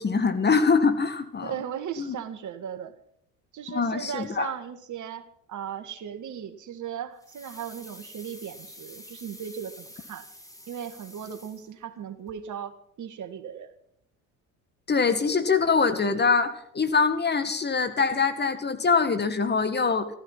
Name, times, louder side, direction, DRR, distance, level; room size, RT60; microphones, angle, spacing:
voice 1, 0.0-1.5 2.0-2.2 3.7-4.5 14.9-20.1, left 5 dB, 25° left, 10 dB, 1.9 m, -24 dB
voice 2, 1.4-2.9 3.5-10.3 10.7-13.7, right 8 dB, 50° right, 10 dB, 1.9 m, -37 dB
sound 1, 7.2-12.0 12.3-12.4, left 1 dB, 10° left, 3.3 m, -48 dB
14.0 x 14.0 x 5.8 m, 0.68 s
hypercardioid pair, 75°, 39 cm